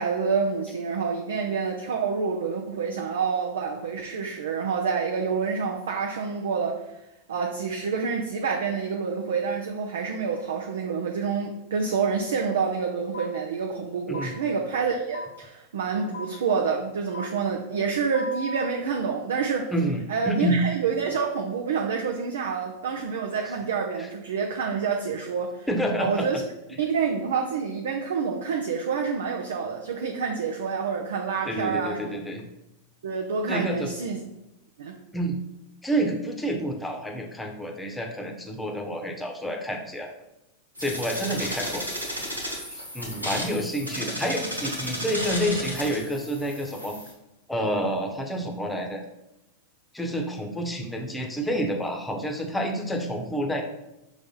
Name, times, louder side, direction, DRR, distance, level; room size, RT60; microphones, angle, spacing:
voice 1, 0.0-6.8 7.3-19.7 20.1-25.7 26.0-26.4 26.8-32.2 33.0-34.2 34.8-35.0, right 5 dB, 65° right, 1 dB, 0.7 m, -28 dB
sound 1, 13.1-13.3 14.1-14.3 15.1-15.3 16.1-16.3 17.1-17.3 18.1-18.7, left 2 dB, 70° left, 0.9 m, -35 dB
voice 2, 19.7-20.6 24.0-24.1 25.7-26.3 31.5-32.5 33.5-33.9 35.1-35.4 35.8-40.1 40.8-41.8 42.7-46.9 47.5-49.0 49.9-53.6, equal, 5° left, 2 dB, 1.0 m, -28 dB
sound 2, 40.8-47.1, equal, 90° right, 1.6 m, -33 dB
6.1 x 3.3 x 5.5 m, 0.92 s
figure-of-eight pair, 90°, 0 cm